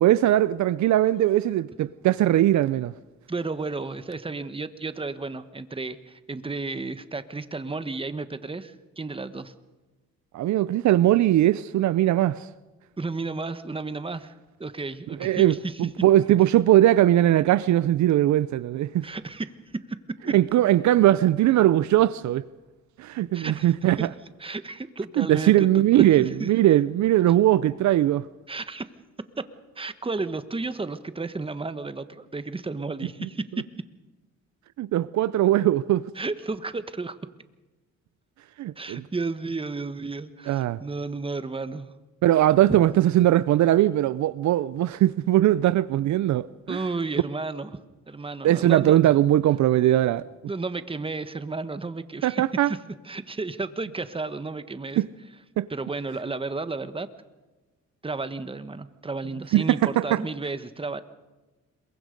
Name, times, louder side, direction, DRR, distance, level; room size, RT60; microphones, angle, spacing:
voice 1, 0.0-2.9 10.3-12.5 15.2-19.1 20.3-22.4 23.0-24.1 25.2-28.2 33.2-33.3 34.8-36.1 38.6-39.0 40.5-40.8 42.2-46.8 48.4-50.2 52.2-52.7 55.0-55.1 55.6-55.7 59.5-60.2, right 13 dB, 70° right, 0.6 m, -20 dB
voice 2, 3.3-9.5 13.0-14.3 14.6-15.7 19.0-19.5 20.3-20.4 23.3-23.7 24.0-24.1 24.4-26.5 28.5-28.9 29.8-33.5 36.2-37.2 38.8-41.9 42.7-42.8 46.7-47.8 48.1-49.1 50.5-52.8 53.0-55.0 55.7-57.1 58.0-61.0, right 3 dB, 20° right, 1.3 m, -32 dB
27.0 x 22.5 x 5.3 m
cardioid pair, 90°, 30 cm